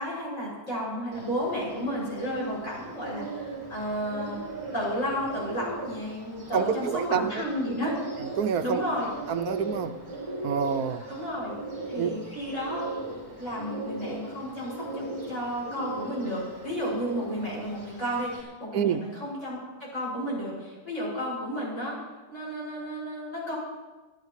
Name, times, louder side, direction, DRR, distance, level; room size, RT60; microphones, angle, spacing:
voice 1, 0.0-4.4 4.7-7.9 8.6-9.1 11.1-11.6 11.9-12.9 13.4-22.0 22.3-23.5, equal, 55° left, -5 dB, 7.2 m, -32 dB
Bird, 1.1-18.4, right 2 dB, 15° right, 2.8 m, -38 dB
voice 2, 6.5-7.5 8.2-8.8 9.3-10.0 10.4-11.0 12.0-12.2 18.7-19.0, right 7 dB, 75° right, 9 dB, 1.2 m, -27 dB
25.5 x 12.5 x 3.2 m, 1.2 s
omnidirectional pair, 1.6 m